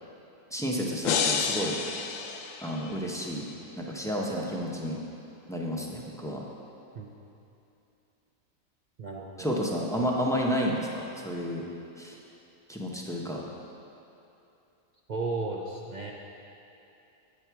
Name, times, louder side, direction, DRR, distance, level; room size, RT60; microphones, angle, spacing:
voice 1, 0.5-1.7 2.6-3.4 3.8-5.0 5.5-6.4 9.4-11.6 12.0-12.2 12.7-13.4, equal, 5° left, -2 dB, 0.5 m, -31 dB
sound 1, 1.0-3.2, left 6 dB, 75° left, 1.0 m, -30 dB
voice 2, 9.0-9.5 15.1-16.1, right 3 dB, 60° right, -1 dB, 0.4 m, -34 dB
8.5 x 7.2 x 4.6 m, 2.8 s
omnidirectional pair, 1.4 m